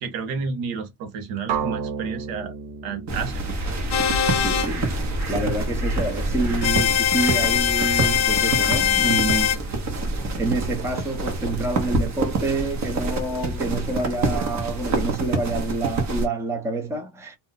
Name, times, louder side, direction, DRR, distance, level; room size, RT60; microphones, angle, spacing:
voice 1, 0.0-2.5 2.8-3.4, right 5 dB, 90° right, 1.2 m, -31 dB
sound 1, 1.5-5.4, right 6 dB, 65° right, 0.9 m, -33 dB
sound 2, 3.1-16.3, right 2 dB, 35° right, 0.9 m, -27 dB
sound 3, 3.9-4.7 6.6-9.6, left 9 dB, 50° left, 0.7 m, -21 dB
voice 2, 4.4-9.6 10.4-17.3, right 2 dB, 5° right, 0.6 m, -28 dB
2.6 x 2.1 x 4.0 m
cardioid pair, 150°, 49 cm